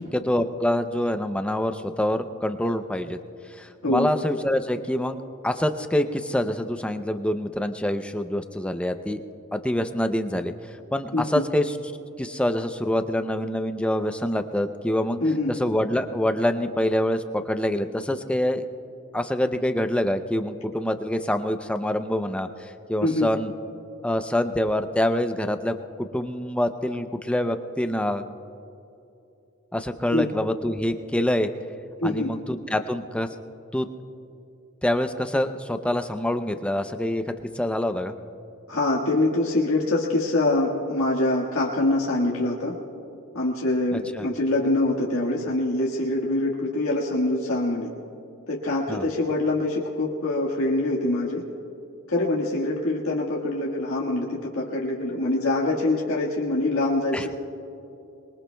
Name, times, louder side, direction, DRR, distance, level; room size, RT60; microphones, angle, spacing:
voice 1, 0.0-3.2 3.5-9.2 9.5-10.5 10.9-11.7 12.2-15.2 15.5-18.7 19.1-23.5 24.0-28.2 29.7-31.5 32.0-33.3 33.7-33.9 34.8-38.1 43.9-44.3 48.9-49.1 57.1-57.3, left 1 dB, 5° left, 8 dB, 0.5 m, -26 dB
voice 2, 11.1-11.4 15.2-15.5 23.0-23.3 30.1-30.3 32.0-32.3 38.7-42.7 43.3-47.9 48.5-51.4 52.1-57.3, left 2 dB, 75° left, -3 dB, 1.6 m, -24 dB
25.0 x 22.0 x 2.2 m, 2.8 s
head